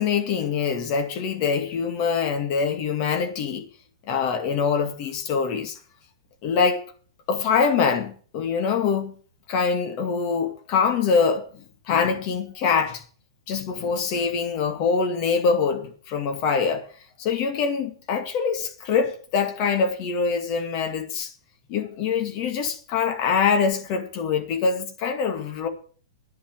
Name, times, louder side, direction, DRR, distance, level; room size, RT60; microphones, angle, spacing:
voice 1, 0.0-3.7 4.1-5.8 6.4-6.8 7.3-9.2 9.5-11.4 11.9-13.0 13.5-16.9 17.2-21.3 21.7-25.7, left 5 dB, 40° left, 2.1 m, -24 dB
10.0 x 8.8 x 9.0 m
figure-of-eight pair, 110°, 3 cm